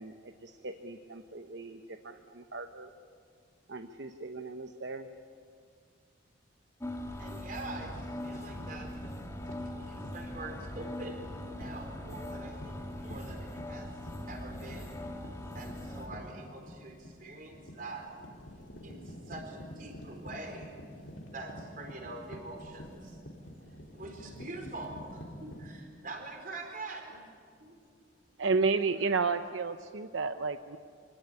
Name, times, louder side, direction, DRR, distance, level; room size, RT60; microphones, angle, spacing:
voice 1, 0.0-2.9 3.7-5.1, right 2 dB, 65° right, 7 dB, 1.0 m, -43 dB
sound 1, 6.8-16.1, left 1 dB, 15° left, 2.4 m, -41 dB
voice 2, 7.2-9.0 9.4-9.6 9.9-13.9 14.3-15.0 15.5-18.1 18.8-20.7 21.3-23.2 23.9-27.3 27.6-27.8, right 2 dB, 45° right, 3 dB, 4.2 m, -45 dB
sound 2, 7.8-25.7, equal, 75° left, 2.9 m, -48 dB
voice 3, 28.4-30.8, right 4 dB, 85° right, 9 dB, 0.7 m, -29 dB
25.0 x 18.0 x 9.9 m, 2.2 s
head